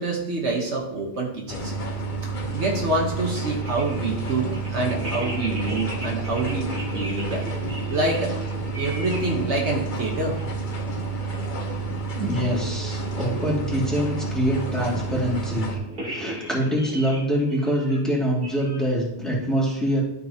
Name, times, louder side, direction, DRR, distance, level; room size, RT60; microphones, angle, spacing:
voice 1, 0.0-1.7 2.5-7.4 7.9-8.3 8.8-10.4, right 2 dB, 70° right, -1 dB, 1.6 m, -26 dB
sound 1, 1.5-15.8, right 3 dB, 45° left, 1.2 m, -30 dB
sound 2, 3.5-9.3 9.6-10.5 10.8-10.9 11.2-11.7 12.0-12.1 12.6-13.9 15.8-18.9, right 1 dB, 50° right, 2.4 m, -37 dB
voice 2, 12.2-15.8 16.1-20.0, equal, ahead, -5 dB, 2.4 m, -25 dB
13.0 x 5.4 x 2.9 m, 0.79 s
omnidirectional pair, 1.2 m